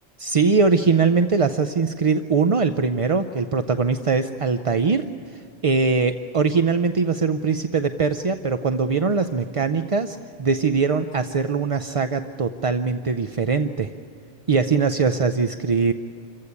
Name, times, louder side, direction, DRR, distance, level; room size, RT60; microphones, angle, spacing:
voice 1, 0.2-13.9 14.5-15.9, right 4 dB, 40° right, 9 dB, 0.5 m, -22 dB
27.0 x 15.0 x 9.7 m, 2.6 s
omnidirectional pair, 1.2 m